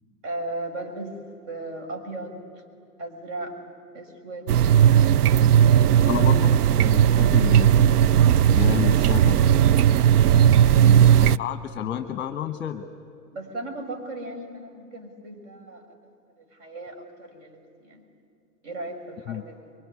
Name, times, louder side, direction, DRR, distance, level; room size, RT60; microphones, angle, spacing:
voice 1, 0.2-1.2 1.5-2.4 3.0-3.6 3.9-4.5 5.8-6.3 10.7-11.1 13.3-15.9 16.4-18.0 18.6-19.6, right 2 dB, 45° right, 3 dB, 5.6 m, -36 dB
sound 1, 4.5-11.4, right 9 dB, 70° right, 0.6 m, -17 dB
voice 2, 6.1-6.6 6.8-7.8 8.5-9.5 11.2-12.8 19.3-19.4, left 11 dB, 25° left, 8 dB, 1.2 m, -30 dB
25.0 x 22.5 x 9.8 m, 2.5 s
figure-of-eight pair, 110°, 48 cm